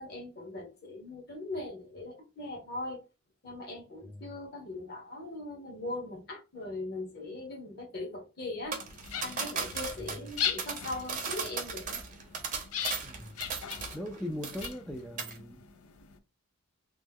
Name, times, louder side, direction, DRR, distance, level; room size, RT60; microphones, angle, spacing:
voice 1, 0.0-3.0 3.4-8.8 9.2-12.0, left 2 dB, 50° left, 1.1 m, -40 dB
sound 1, 8.7-14.2 14.4-14.9 15.2-15.4, right 5 dB, 40° right, 0.6 m, -37 dB
sound 2, 8.8-16.2, left 8 dB, 85° left, 0.4 m, -39 dB
voice 2, 10.0-10.3 13.0-13.4 13.9-15.6, left 1 dB, 5° left, 0.3 m, -40 dB
3.1 x 2.0 x 3.4 m
head